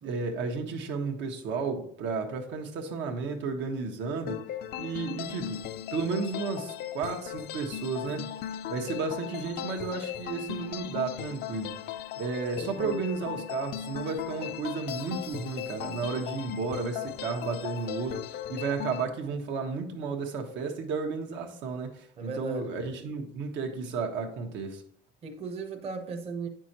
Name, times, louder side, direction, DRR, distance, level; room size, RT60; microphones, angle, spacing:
voice 1, 0.0-4.4 4.8-5.6 5.9-8.3 8.7-11.7 12.2-24.8, right 4 dB, 80° right, 1.3 m, -33 dB
sound 1, 4.3-19.0, left 11 dB, 55° left, 0.4 m, -38 dB
voice 2, 12.6-13.1 22.2-22.7 25.2-26.5, right 4 dB, 30° right, 0.8 m, -37 dB
8.9 x 6.1 x 2.9 m
cardioid pair, 175°, 19 cm